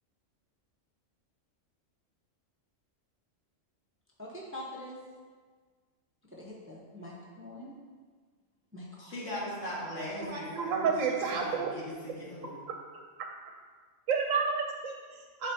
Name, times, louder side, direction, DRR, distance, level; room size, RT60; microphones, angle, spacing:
voice 1, 4.2-5.0 6.3-7.8 8.7-9.1, left 1 dB, 10° right, -4 dB, 0.7 m, -44 dB
voice 2, 9.0-12.6, left 1 dB, 65° left, -7 dB, 2.2 m, -39 dB
voice 3, 10.2-11.7 12.4-12.5 14.1-15.5, right 5 dB, 80° right, 2 dB, 1.0 m, -30 dB
10.5 x 4.2 x 2.7 m, 1.5 s
omnidirectional pair, 1.3 m